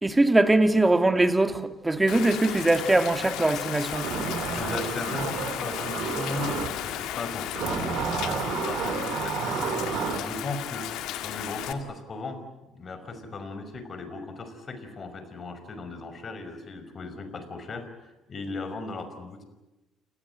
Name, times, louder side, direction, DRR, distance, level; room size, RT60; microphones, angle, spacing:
voice 1, 0.0-4.1, right 2 dB, 15° right, 2.3 m, -22 dB
Rain, 2.1-11.7, left 12 dB, 70° left, 1.9 m, -35 dB
sound 1, 3.9-6.7 7.5-10.2, right 6 dB, 65° right, 4.4 m, -31 dB
voice 2, 4.5-9.9 10.2-10.9 11.2-12.4 12.7-19.4, left 3 dB, 40° left, 5.6 m, -37 dB
29.0 x 18.5 x 9.0 m
hypercardioid pair, 55°, 0 cm